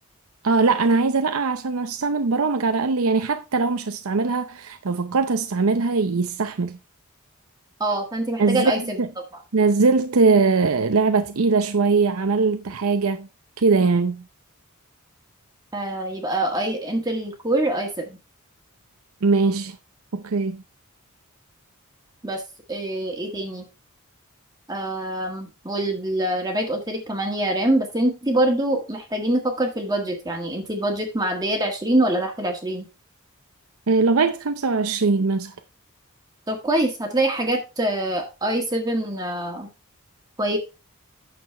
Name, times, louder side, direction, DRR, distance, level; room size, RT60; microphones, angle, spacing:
voice 1, 0.4-6.8 8.4-9.1 9.5-13.3 13.6-14.2 19.2-19.8 20.1-20.6 33.9-35.5, right 4 dB, 70° right, 0.7 m, -21 dB
voice 2, 7.8-9.0 15.7-18.2 22.2-22.4 22.7-23.7 24.7-32.9 36.5-39.7 40.4-40.6, right 1 dB, 15° right, 1.6 m, -24 dB
9.3 x 6.7 x 3.4 m
head